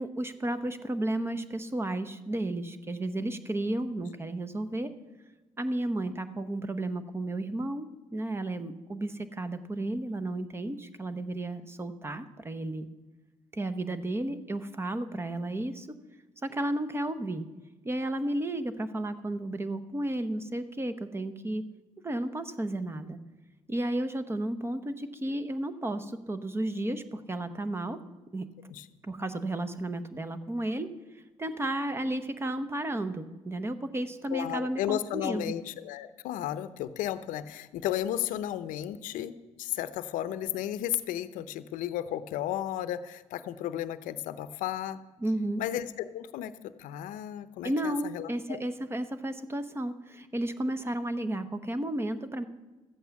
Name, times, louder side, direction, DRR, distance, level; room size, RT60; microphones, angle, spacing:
voice 1, 0.0-4.9 5.6-12.9 13.5-15.9 16.4-17.5 17.8-21.6 22.0-23.2 23.7-28.0 28.3-28.5 29.0-30.9 31.4-35.5 45.2-45.6 47.6-52.4, right 1 dB, 20° right, 10 dB, 0.9 m, -33 dB
voice 2, 34.3-45.0 45.6-46.5 46.8-48.6, left 12 dB, 85° left, 13 dB, 0.6 m, -34 dB
13.5 x 8.4 x 7.0 m, 1.2 s
cardioid pair, 100°, 13 cm